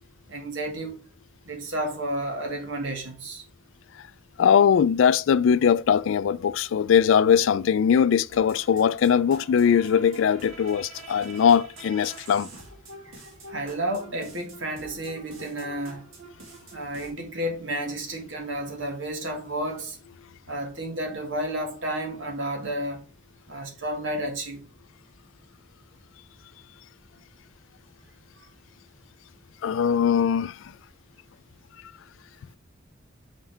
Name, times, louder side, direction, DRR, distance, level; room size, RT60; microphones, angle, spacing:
voice 1, 0.3-1.0 1.4-3.4 13.0-16.1 16.7-20.0 20.5-23.0 23.5-24.6, right 1 dB, 70° right, 1.7 m, -31 dB
voice 2, 4.4-12.5 29.6-30.7, left 7 dB, 75° left, 0.3 m, -21 dB
sound 1, 8.3-17.1, right 2 dB, 90° right, 2.0 m, -46 dB
5.6 x 5.5 x 3.4 m
head